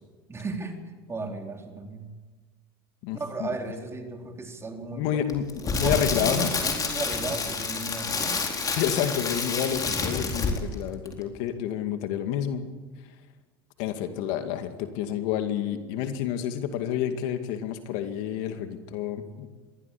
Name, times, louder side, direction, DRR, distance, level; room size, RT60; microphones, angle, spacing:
voice 1, 0.3-0.8 1.1-2.1 3.1-5.2 5.6-8.4, right 3 dB, 20° right, 3 dB, 4.0 m, -35 dB
voice 2, 3.0-3.5 4.9-5.4 5.7-6.5 8.7-12.6 13.8-19.5, left 10 dB, 65° left, 7 dB, 2.3 m, -29 dB
Crackle, 5.3-10.8 11.1-11.2, left 4 dB, 30° left, 4.2 m, -29 dB
22.5 x 15.5 x 8.6 m, 1.4 s
hypercardioid pair, 95°, 13 cm